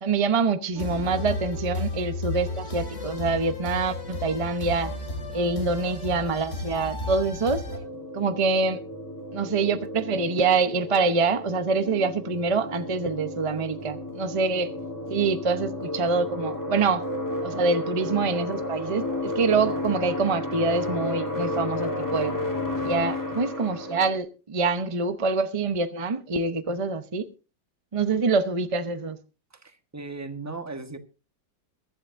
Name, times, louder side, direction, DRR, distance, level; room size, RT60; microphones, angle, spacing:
voice 1, 0.0-4.9 5.3-7.6 8.1-8.8 9.3-14.7 15.1-17.0 17.4-22.3 22.8-27.3 27.9-29.2, right 4 dB, 40° right, 0.4 m, -25 dB
sound 1, 0.7-7.8, left 2 dB, 40° left, 2.6 m, -33 dB
sound 2, 7.7-24.2, left 1 dB, 10° left, 2.2 m, -32 dB
voice 2, 29.5-31.0, right 3 dB, 10° right, 1.2 m, -38 dB
22.5 x 11.5 x 2.6 m
omnidirectional pair, 2.0 m